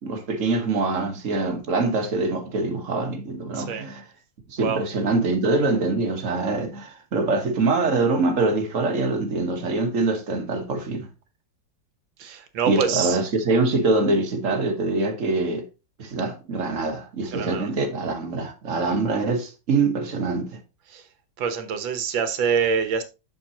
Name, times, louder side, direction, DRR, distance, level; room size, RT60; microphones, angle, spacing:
voice 1, 0.0-4.1 4.5-11.1 12.7-15.7 16.0-20.6, right 3 dB, 45° right, 1.5 m, -24 dB
voice 2, 3.5-3.9 4.6-4.8 12.2-13.2 17.3-17.7 20.9-21.0 21.4-23.0, right 6 dB, 70° right, 1.7 m, -25 dB
7.2 x 6.7 x 2.9 m
omnidirectional pair, 2.2 m